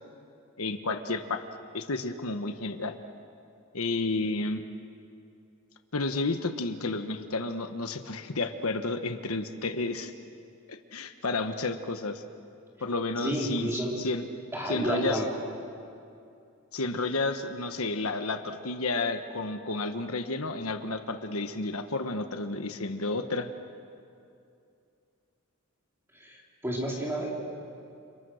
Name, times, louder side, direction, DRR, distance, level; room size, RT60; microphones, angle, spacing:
voice 1, 0.6-1.4 1.7-3.0 3.7-4.6 5.9-10.1 10.7-12.2 12.8-14.2 14.7-15.2 16.7-23.5, left 3 dB, 75° left, 7 dB, 1.3 m, -31 dB
voice 2, 13.2-13.9 14.5-15.3 26.1-27.3, right 1 dB, 10° right, -3 dB, 4.0 m, -31 dB
29.5 x 29.0 x 6.5 m, 2.6 s
head